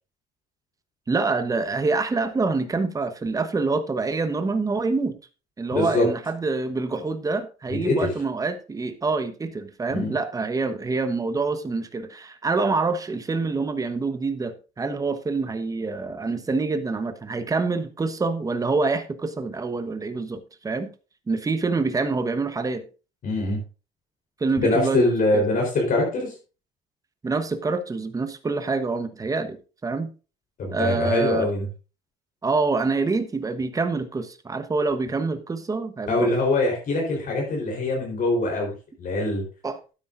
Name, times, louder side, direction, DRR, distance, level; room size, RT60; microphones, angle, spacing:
voice 1, 1.1-5.2 5.6-20.9 21.3-22.8 24.4-25.4 27.2-29.6 29.8-30.1 30.7-31.5 32.4-36.3 39.6-39.8, right 3 dB, 20° right, 1.1 m, -26 dB
voice 2, 5.7-6.1 7.8-8.1 9.9-10.1 23.2-23.6 24.6-26.4 30.6-31.7 36.1-39.4, left 2 dB, 55° left, 4.0 m, -23 dB
12.5 x 9.4 x 2.6 m
cardioid pair, 110°, 17 cm